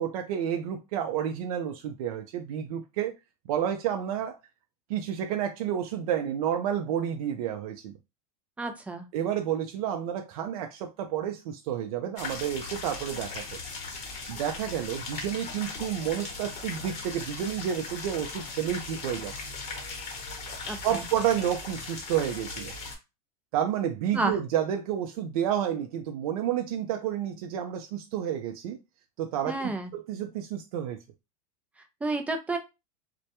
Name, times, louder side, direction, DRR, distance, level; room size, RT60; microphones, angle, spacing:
voice 1, 0.0-3.1 3.5-4.4 4.9-7.9 9.1-13.4 14.3-19.3 20.7-22.7 23.5-28.8 29.2-31.0, right 10 dB, 75° right, 0.5 m, -30 dB
voice 2, 8.6-9.1 20.7-21.0 24.1-24.4 29.5-29.9 32.0-32.6, right 2 dB, 5° right, 0.3 m, -30 dB
sound 1, 12.2-23.0, left 4 dB, 35° left, 0.9 m, -38 dB
2.1 x 2.1 x 2.8 m
supercardioid pair, 135°, 19 cm